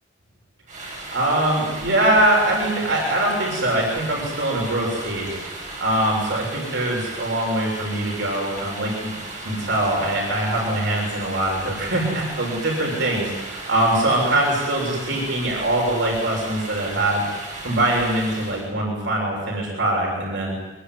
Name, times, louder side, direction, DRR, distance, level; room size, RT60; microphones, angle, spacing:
sound 1, 0.7-18.7, right 2 dB, 40° right, 7.2 m, -36 dB
voice 1, 1.1-5.4 5.8-9.1 9.4-17.2 17.6-20.5, right 1 dB, 75° right, -2 dB, 7.0 m, -22 dB
24.5 x 22.0 x 9.8 m, 1.1 s
head